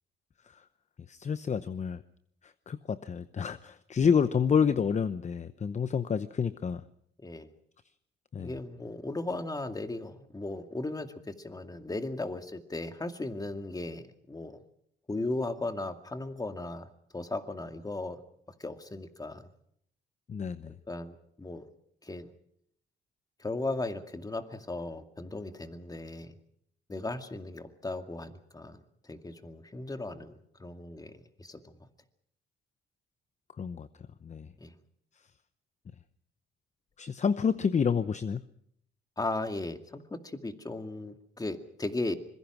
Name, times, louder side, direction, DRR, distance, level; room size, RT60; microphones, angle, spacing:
voice 1, 1.1-2.0 2.4-6.8 8.3-8.5 20.3-20.7 33.6-33.9 34.2-34.5 37.0-38.4, left 6 dB, 35° left, 13 dB, 0.8 m, -29 dB
voice 2, 7.2-7.5 8.4-14.6 15.1-16.9 17.1-18.2 18.6-19.5 20.9-21.7 22.0-22.3 23.4-26.3 26.9-31.9 34.6-34.7 39.2-42.1, left 2 dB, 20° left, 7 dB, 2.2 m, -37 dB
25.5 x 22.0 x 6.1 m, 0.71 s
cardioid pair, 90°, 20 cm